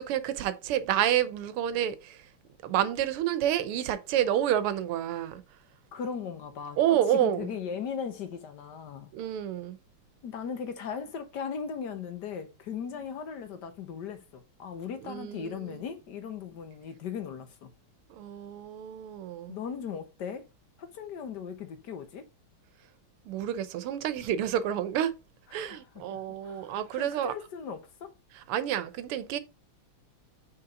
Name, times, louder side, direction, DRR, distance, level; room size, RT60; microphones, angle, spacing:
voice 1, 0.0-2.3 2.6-5.4 6.8-7.5 9.1-9.8 15.0-15.8 18.1-19.5 23.2-25.1 25.5-27.3 28.3-29.4, right 11 dB, 85° right, 1.7 m, -29 dB
voice 2, 5.9-6.8 7.1-9.1 10.2-17.7 19.5-20.5 20.8-22.2 25.5-28.1, left 7 dB, 55° left, 1.5 m, -38 dB
5.8 x 4.3 x 3.8 m
omnidirectional pair, 2.4 m